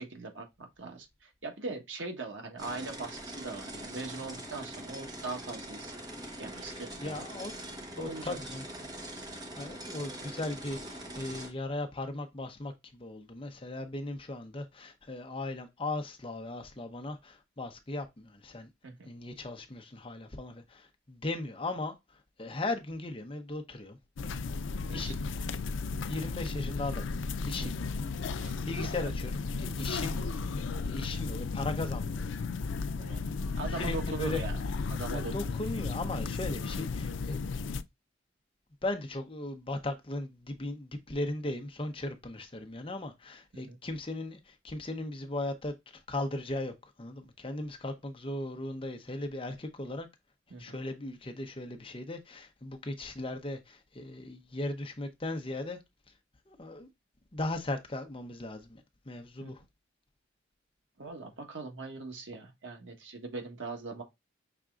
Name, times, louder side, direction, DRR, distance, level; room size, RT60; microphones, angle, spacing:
voice 1, 0.0-6.0 6.4-7.2 8.0-8.4 18.8-19.1 24.9-25.1 27.6-27.9 28.4-28.5 32.9-33.2 33.5-34.5 34.9-35.6 43.5-43.8 50.5-50.8 59.4-59.5 61.0-64.0, right 3 dB, 80° right, 1.4 m, -41 dB
sound 1, 2.6-11.5, right 1 dB, 20° right, 1.1 m, -43 dB
voice 2, 6.6-7.5 8.0-8.6 9.2-18.7 19.0-21.9 22.4-24.0 24.9-25.3 26.1-27.2 27.4-27.9 28.7-30.3 30.9-32.3 33.7-34.4 35.1-37.4 38.8-50.1 50.6-55.8 56.5-56.9 57.3-59.6, left 2 dB, 30° left, 0.7 m, -37 dB
sound 2, 24.2-37.8, left 4 dB, 90° left, 0.4 m, -34 dB
5.9 x 3.6 x 2.4 m
head